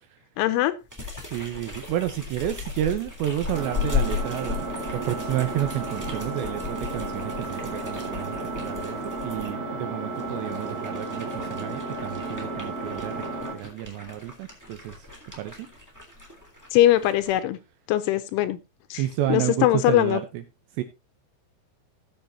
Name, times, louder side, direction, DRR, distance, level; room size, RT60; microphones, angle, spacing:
voice 1, 0.4-0.7 16.7-17.6 17.9-18.6 18.9-19.0 19.3-20.2, left 14 dB, 80° left, 12 dB, 3.0 m, -21 dB
sound 1, 0.9-9.5 10.1-17.4, left 6 dB, 10° right, 0.8 m, -36 dB
voice 2, 1.3-15.1 15.4-15.7 19.0-20.4 20.7-20.8, right 12 dB, 80° right, 8 dB, 2.6 m, -31 dB
Engine, 3.5-13.5, right 2 dB, 30° right, 1.3 m, -33 dB
18.0 x 6.9 x 2.7 m, 0.24 s
omnidirectional pair, 5.8 m